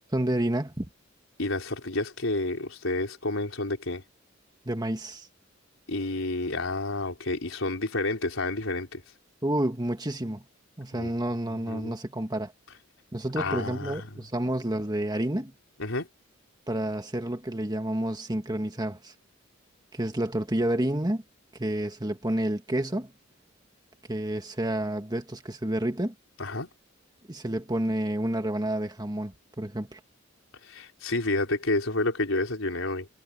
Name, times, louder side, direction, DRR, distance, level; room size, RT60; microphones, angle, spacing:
voice 1, 0.1-0.9 4.7-5.3 9.4-10.4 10.8-12.5 13.1-15.5 16.7-19.1 19.9-21.2 21.6-23.1 24.1-26.1 27.3-30.0, right 1 dB, 20° right, 1.8 m, -29 dB
voice 2, 1.4-4.0 5.9-9.0 10.9-11.1 11.5-11.9 13.4-14.2 15.8-16.1 26.4-26.7 30.6-33.1, left 2 dB, 90° left, 4.1 m, -30 dB
head